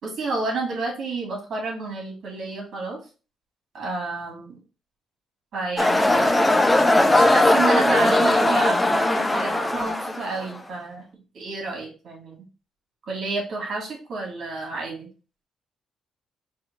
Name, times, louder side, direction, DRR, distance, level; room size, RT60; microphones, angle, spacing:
voice 1, 0.0-3.0 3.7-4.5 5.5-6.5 7.1-11.0 11.3-12.4 13.1-15.1, right 3 dB, 60° right, 0 dB, 2.4 m, -30 dB
sound 1, 5.8-10.6, left 1 dB, 15° left, 0.6 m, -19 dB
4.4 x 3.0 x 4.0 m, 0.34 s
cardioid pair, 90°, 0 cm